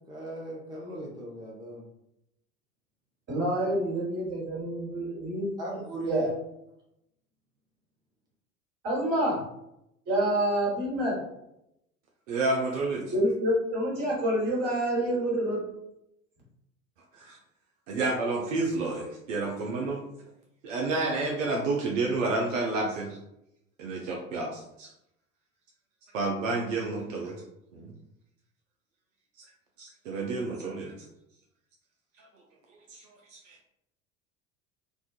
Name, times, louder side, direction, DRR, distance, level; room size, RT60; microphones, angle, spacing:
voice 1, 0.1-1.8 5.6-6.3, equal, 10° right, -4 dB, 0.6 m, -38 dB
voice 2, 3.3-5.5 6.1-6.3 8.8-9.4 10.1-11.1 13.1-15.6, right 1 dB, 40° right, -5 dB, 1.4 m, -27 dB
voice 3, 12.3-13.1 17.2-17.4 17.9-20.0 20.6-23.2 23.8-24.9 26.1-27.3 27.7-27.9 29.8-30.9 32.9-33.0 33.3-33.6, right 3 dB, 70° right, -1 dB, 0.5 m, -30 dB
2.4 x 2.3 x 2.3 m, 0.83 s
figure-of-eight pair, 70°, 40 cm